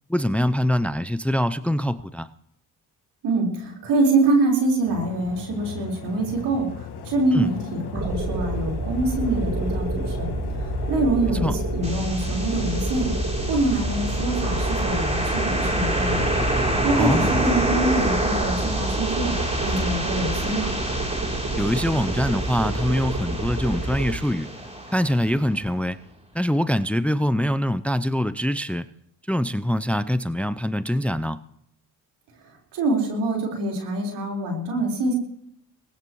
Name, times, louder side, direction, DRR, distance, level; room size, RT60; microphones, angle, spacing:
voice 1, 0.1-2.3 7.3-7.5 11.4-11.6 17.0-17.3 21.6-24.5 24.9-26.0 26.3-28.9 29.3-31.4, equal, 5° left, 14 dB, 0.6 m, -24 dB
voice 2, 3.2-6.7 7.1-10.3 10.9-13.1 13.5-16.4 16.8-19.3 19.6-20.7 32.7-35.1, right 2 dB, 80° right, -1 dB, 4.8 m, -25 dB
sound 1, 4.8-17.9, left 6 dB, 70° left, 1.9 m, -37 dB
sound 2, 7.9-24.1, right 2 dB, 35° right, 7.9 m, -28 dB
sound 3, 11.8-25.7, right 1 dB, 15° right, 3.5 m, -28 dB
23.5 x 19.5 x 3.2 m, 0.72 s
supercardioid pair, 60°, 40 cm